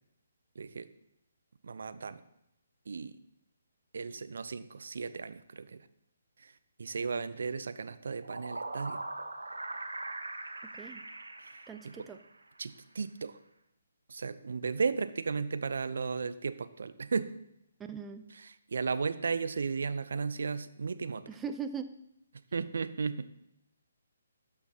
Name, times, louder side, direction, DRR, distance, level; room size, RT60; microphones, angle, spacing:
voice 1, 0.6-0.9 1.6-2.2 2.9-3.2 3.9-5.9 6.4-9.0 11.4-12.0 12.6-13.4 14.1-17.3 18.3-21.2 22.5-23.3, right 5 dB, 65° right, 13 dB, 0.5 m, -35 dB
sound 1, 8.0-12.4, right 2 dB, 85° right, 0.8 m, -41 dB
voice 2, 11.7-12.2 17.9-18.2 21.3-21.9, right 6 dB, 10° right, 7 dB, 0.5 m, -39 dB
12.0 x 5.7 x 2.8 m, 0.80 s
figure-of-eight pair, 140°, 0 cm